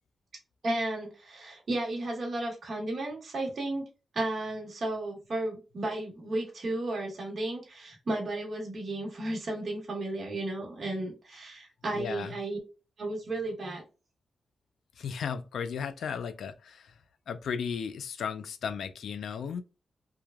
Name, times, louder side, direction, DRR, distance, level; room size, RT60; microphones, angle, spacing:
voice 1, 0.6-3.8 4.1-12.6 13.0-13.8, right 2 dB, 45° right, 1.0 m, -33 dB
voice 2, 11.9-12.4 15.0-16.9 17.3-19.6, left 6 dB, 80° left, 0.3 m, -35 dB
3.2 x 2.2 x 2.2 m
wide cardioid pair, 170°, 0 cm